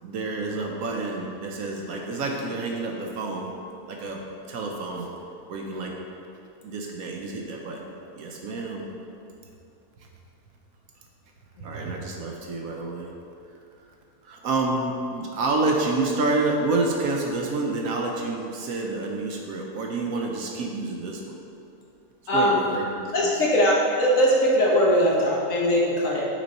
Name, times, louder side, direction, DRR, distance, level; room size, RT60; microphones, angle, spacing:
voice 1, 0.0-3.5 3.9-4.2 4.5-5.1 5.5-5.9 6.6-7.9 8.1-8.9 11.6-13.1 14.2-21.4 22.3-23.3, right 3 dB, 65° right, 1 dB, 1.0 m, -28 dB
voice 2, 22.3-22.6 23.1-26.2, equal, 55° left, -4 dB, 1.4 m, -21 dB
6.2 x 5.2 x 4.1 m, 2.7 s
omnidirectional pair, 1.7 m